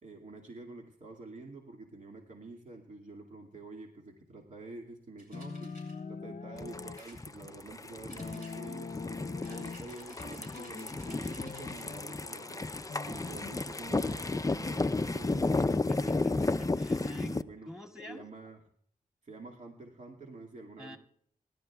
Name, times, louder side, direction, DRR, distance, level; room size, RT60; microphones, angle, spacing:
voice 1, 0.0-5.7 6.1-8.9 9.5-16.6 17.0-17.7 18.1-18.6 19.2-21.0, right 3 dB, 50° right, -1 dB, 2.2 m, -48 dB
sound 1, 5.2-6.0 6.9-7.8 8.1-8.9 9.4-11.9, right 1 dB, 70° right, 6.3 m, -56 dB
sound 2, 5.3-7.0 8.2-9.9 10.2-12.2 12.9-13.6, left 4 dB, 60° left, 0.7 m, -43 dB
sound 3, 6.6-17.4, left 3 dB, 20° left, 0.5 m, -33 dB
voice 2, 15.7-17.4 17.7-18.3 20.8-21.0, left 1 dB, 5° right, 1 dB, 2.4 m, -45 dB
26.5 x 12.0 x 2.4 m, 0.64 s
cardioid pair, 50°, 15 cm